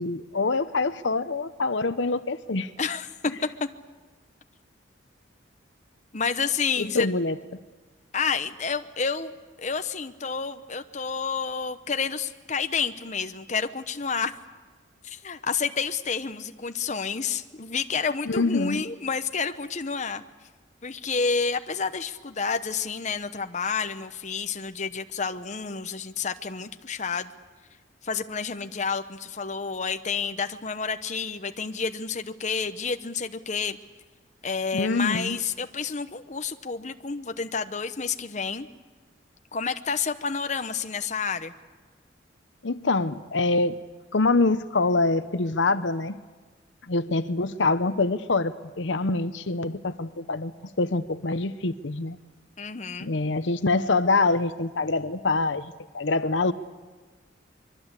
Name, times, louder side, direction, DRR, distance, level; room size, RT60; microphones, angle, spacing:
voice 1, 0.0-2.7 6.8-7.4 18.3-18.8 34.7-35.4 42.6-43.8 44.1-46.2 46.8-52.2 53.0-56.5, left 3 dB, 75° left, 12 dB, 0.9 m, -25 dB
voice 2, 6.1-7.1 8.1-9.3 9.6-14.3 15.0-20.2 20.8-27.3 28.0-33.8 34.4-38.7 39.5-41.5 52.6-53.1, left 5 dB, 40° left, 9 dB, 1.0 m, -29 dB
25.0 x 23.0 x 8.3 m, 1.3 s
head